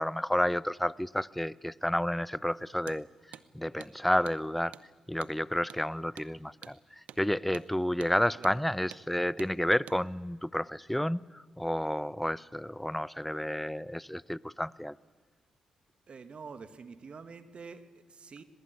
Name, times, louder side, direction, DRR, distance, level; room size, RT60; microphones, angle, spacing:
voice 1, 0.0-3.1 3.5-4.7 5.1-15.0, equal, 5° left, 0.7 m, -31 dB
Hammer, 2.8-3.0 3.3-3.5 3.8-3.9 4.3-4.4 4.7-4.9 5.2-5.4 5.7-5.8 6.2-6.3 6.6-6.8 7.1-7.2 7.5-7.7 8.0-8.2 8.4-8.6 8.9-9.1 9.4-9.5 9.9-10.0, right 10 dB, 75° right, 0.9 m, -48 dB
voice 2, 16.1-18.4, right 5 dB, 50° right, 1.9 m, -47 dB
22.5 x 20.5 x 9.7 m
hypercardioid pair, 45°, 2 cm